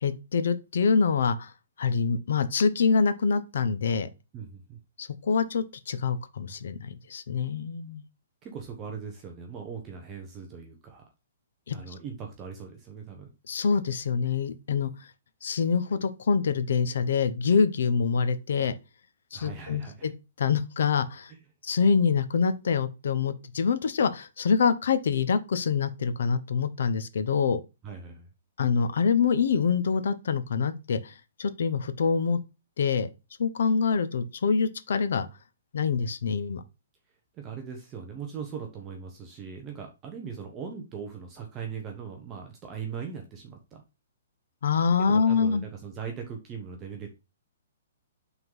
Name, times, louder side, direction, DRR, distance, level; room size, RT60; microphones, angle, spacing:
voice 1, 0.0-1.5 1.8-4.1 5.0-8.0 11.7-11.8 13.5-14.9 15.4-18.7 19.3-20.1 20.4-21.3 21.6-27.6 28.6-31.1 31.4-32.4 32.8-33.1 33.4-35.3 35.7-36.6 44.6-45.6, left 5 dB, 65° left, 0.9 m, -25 dB
voice 2, 4.3-4.8 8.4-11.0 11.7-13.3 19.3-20.1 21.3-21.4 27.8-28.3 37.3-43.8 45.0-47.1, right 6 dB, 15° right, 0.8 m, -40 dB
6.0 x 3.8 x 5.4 m
hypercardioid pair, 175°, 0 cm